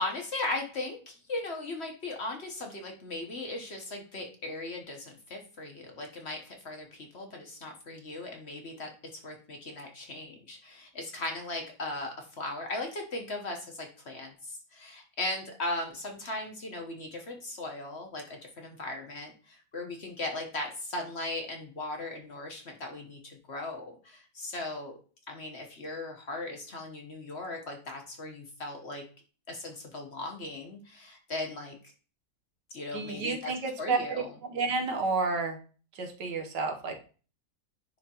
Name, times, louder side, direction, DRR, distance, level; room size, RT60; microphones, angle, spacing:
voice 1, 0.0-25.0 25.3-29.0 29.5-31.8 32.7-33.5 33.8-34.3, left 2 dB, 45° left, 3 dB, 1.2 m, -38 dB
voice 2, 32.9-35.6 35.9-37.0, right 4 dB, 85° right, 4 dB, 1.7 m, -31 dB
10.0 x 3.5 x 2.9 m, 0.38 s
omnidirectional pair, 1.8 m